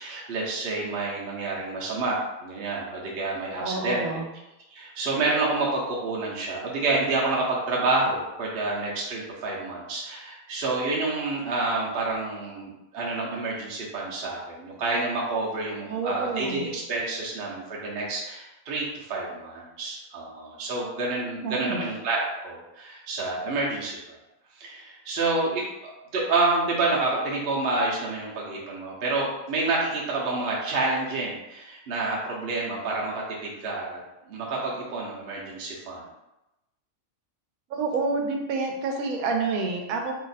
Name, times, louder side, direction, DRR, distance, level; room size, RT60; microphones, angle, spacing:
voice 1, 0.0-4.0 4.7-24.2 24.6-34.0 34.3-36.0, right 3 dB, 55° right, -4 dB, 0.8 m, -28 dB
voice 2, 3.6-4.3 15.9-16.7 21.4-21.8 37.7-40.1, right 4 dB, 85° right, 2 dB, 1.1 m, -28 dB
2.8 x 2.4 x 4.0 m, 0.95 s
omnidirectional pair, 1.4 m